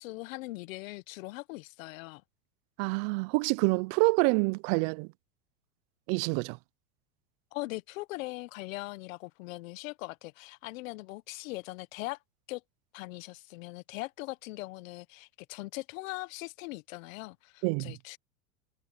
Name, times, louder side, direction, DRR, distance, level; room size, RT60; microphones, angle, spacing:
voice 1, 0.0-2.2 7.5-12.2 12.5-12.6 12.9-18.2, left 21 dB, 60° left, 1.3 m, -40 dB
voice 2, 2.8-5.1 6.1-6.6 17.6-17.9, right 29 dB, 45° right, 0.6 m, -27 dB
hypercardioid pair, 115°, 44 cm